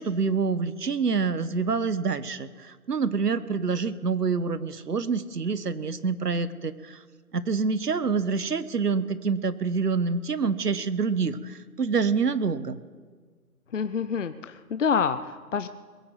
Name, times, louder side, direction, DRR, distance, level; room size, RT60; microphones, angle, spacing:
voice 1, 0.0-7.0 7.3-12.8, right 5 dB, 85° right, 14 dB, 1.3 m, -27 dB
voice 2, 13.7-15.7, left 6 dB, 55° left, 12 dB, 0.7 m, -27 dB
22.0 x 8.0 x 7.9 m, 1.5 s
figure-of-eight pair, 160°, 46 cm